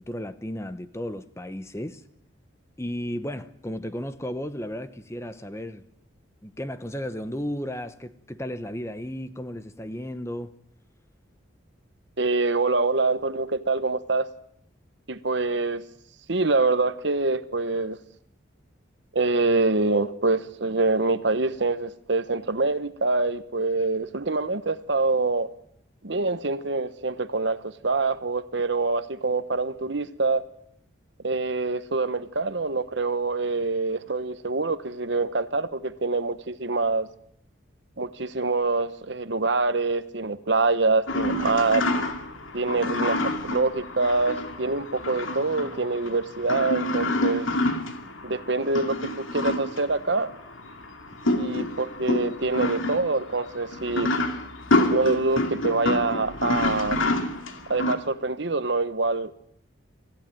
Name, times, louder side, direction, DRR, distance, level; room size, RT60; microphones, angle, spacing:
voice 1, 0.0-2.0 2.8-5.8 6.4-10.5, equal, 15° left, 0.9 m, -34 dB
voice 2, 12.2-14.3 15.1-15.8 16.3-18.0 19.1-25.5 26.0-30.4 31.2-37.1 38.0-41.9 42.5-47.5 48.2-50.3 51.2-54.1 54.9-57.2 57.7-59.3, right 3 dB, 60° right, 1.1 m, -25 dB
sound 1, 41.1-57.9, left 2 dB, 80° left, 2.5 m, -28 dB
25.0 x 15.0 x 9.1 m
head